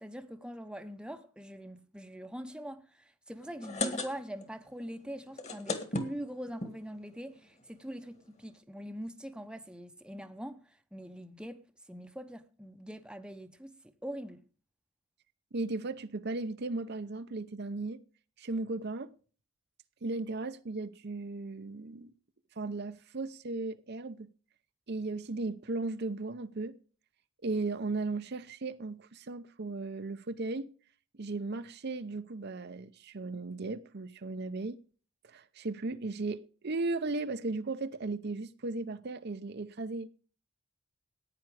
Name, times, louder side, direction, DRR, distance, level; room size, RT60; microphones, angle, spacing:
voice 1, 0.0-11.6 11.9-13.8 14.0-14.4, equal, 5° right, 0.8 m, -43 dB
sound 1, 3.4-4.5 4.8-4.9 5.2-6.7 7.4-7.5 7.8-8.3, left 2 dB, 30° left, 1.8 m, -35 dB
voice 2, 15.5-18.0 18.4-19.1 20.0-22.1 22.6-24.3 24.9-26.7 27.4-30.7 31.2-34.8 35.2-40.1, right 3 dB, 50° right, 0.7 m, -36 dB
15.0 x 9.6 x 4.8 m
head